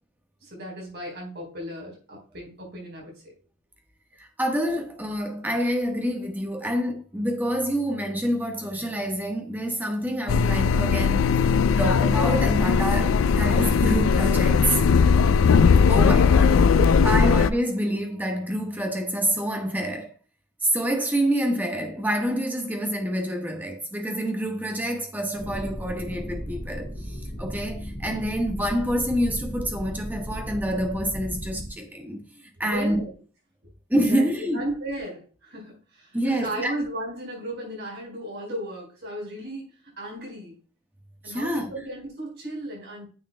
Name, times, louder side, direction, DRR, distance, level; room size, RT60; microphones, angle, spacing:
voice 1, 0.4-3.1 16.6-17.1 32.6-33.1 34.1-34.2 34.5-39.6 40.0-40.5 41.2-43.1, right 1 dB, 55° right, 4.2 m, -35 dB
voice 2, 4.2-11.5 11.8-14.8 15.9-16.6 17.0-20.1 20.6-33.0 33.9-34.6 36.1-36.8 41.2-41.7, equal, 10° right, 1.2 m, -27 dB
sound 1, 10.3-17.5, left 5 dB, 80° left, 0.4 m, -19 dB
sound 2, 25.4-31.7, equal, 50° left, 3.7 m, -35 dB
9.4 x 6.8 x 2.2 m
head